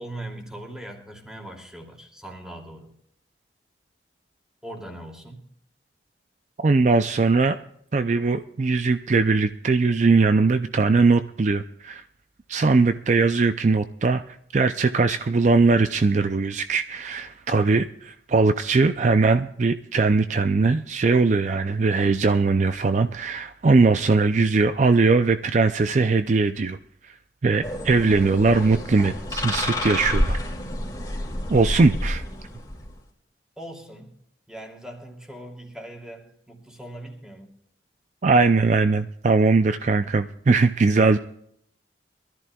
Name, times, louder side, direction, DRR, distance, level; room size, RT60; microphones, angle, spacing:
voice 1, 0.0-2.9 4.6-5.4 33.6-34.2 34.5-37.5, right 1 dB, 5° right, 0 dB, 2.7 m, -40 dB
voice 2, 6.6-7.6 7.9-12.0 12.5-26.8 27.0-27.2 27.4-30.4 31.5-32.2 38.2-41.2, right 3 dB, 40° right, 10 dB, 0.4 m, -20 dB
sound 1, 27.6-33.0, left 1 dB, 25° left, 2.6 m, -29 dB
23.5 x 13.5 x 2.3 m, 0.70 s
head